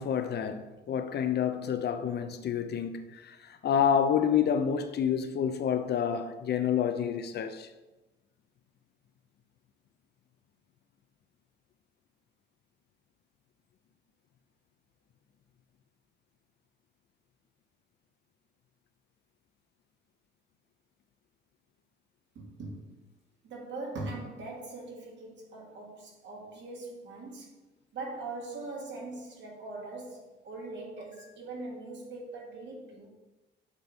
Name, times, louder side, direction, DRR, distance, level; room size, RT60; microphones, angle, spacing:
voice 1, 0.0-7.7 31.2-31.3, left 8 dB, 55° left, 0.5 m, -28 dB
voice 2, 22.4-23.0 23.4-27.6 27.9-33.1, right 2 dB, 65° right, 1.7 m, -41 dB
8.2 x 3.4 x 4.0 m
cardioid pair, 90°, 20 cm